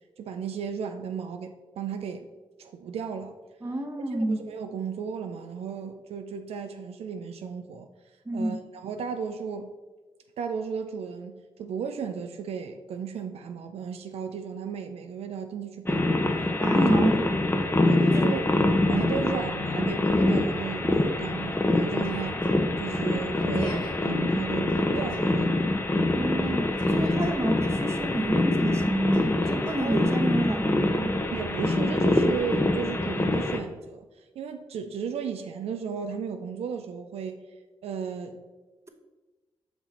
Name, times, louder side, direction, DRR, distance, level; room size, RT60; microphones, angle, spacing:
voice 1, 0.2-2.3 2.6-3.4 4.1-7.9 8.3-9.8 10.4-16.5 16.7-16.9 17.3-17.4 17.9-18.4 18.9-22.4 22.8-25.6 29.8-30.2 31.3-37.4 37.8-38.4, right 6 dB, 85° right, 7 dB, 0.4 m, -35 dB
voice 2, 3.6-4.4 8.3-8.6 16.6-17.2 18.1-18.3 26.1-31.1, right 1 dB, 25° right, 5 dB, 0.9 m, -29 dB
sound 1, 15.8-33.6, left 2 dB, 20° left, 0.7 m, -25 dB
Yell, 22.0-22.5 23.4-23.9 24.7-25.2 26.4-27.3 29.1-29.7, left 1 dB, 45° left, 1.8 m, -45 dB
5.8 x 4.2 x 4.2 m, 1.3 s
cardioid pair, 50°, 10 cm